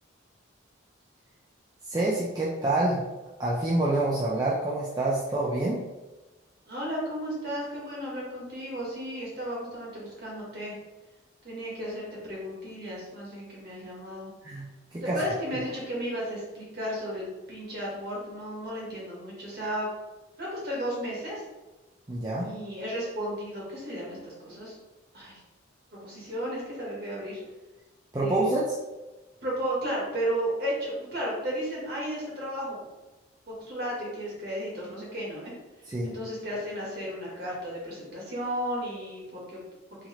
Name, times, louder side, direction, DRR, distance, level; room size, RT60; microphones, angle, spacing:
voice 1, 1.9-3.0 3.4-5.8 14.4-15.2 22.1-22.5 28.1-28.7 35.9-36.1, right 2 dB, 20° right, -6 dB, 0.5 m, -27 dB
voice 2, 6.6-10.8 11.4-14.3 15.0-19.9 20.4-21.4 22.4-24.8 25.1-25.4 26.0-27.4 28.2-28.6 29.4-32.9 33.5-35.5 36.0-39.6, equal, 50° right, -4 dB, 1.4 m, -34 dB
4.0 x 2.9 x 2.9 m, 1.1 s
head